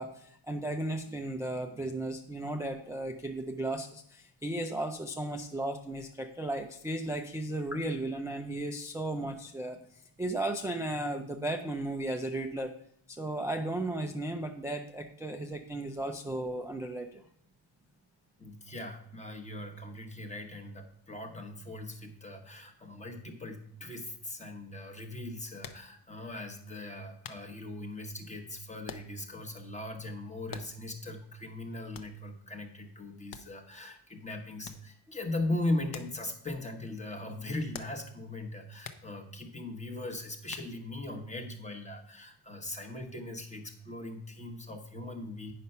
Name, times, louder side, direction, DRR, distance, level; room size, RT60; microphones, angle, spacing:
voice 1, 0.0-9.8 10.2-12.7 13.1-17.2, right 1 dB, 5° right, 3 dB, 0.3 m, -35 dB
voice 2, 18.4-45.5, left 2 dB, 15° left, 5 dB, 1.0 m, -39 dB
sound 1, 25.6-26.0 26.5-26.6 27.2-27.5 28.9-29.3 29.6-29.7 30.5-31.0 31.9-32.2 33.3-33.8 34.6-34.9 35.9-36.2 36.5-36.6 37.7-38.1 38.8-39.1 40.4-41.0, left 7 dB, 45° left, 0.7 m, -46 dB
9.1 x 5.7 x 5.4 m, 0.65 s
cardioid pair, 165°, 48 cm